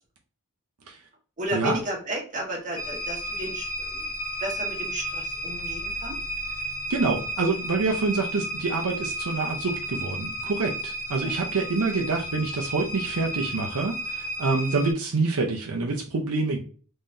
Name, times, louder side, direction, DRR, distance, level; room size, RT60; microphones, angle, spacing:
voice 1, 1.4-4.1 4.4-6.2 11.2-11.3, right 1 dB, 35° right, 0 dB, 1.2 m, -33 dB
sound 1, 2.8-14.9, right 1 dB, 55° left, 1.3 m, -33 dB
voice 2, 6.9-16.6, right 3 dB, 75° right, 0 dB, 0.7 m, -26 dB
3.7 x 3.1 x 2.6 m, 0.40 s
head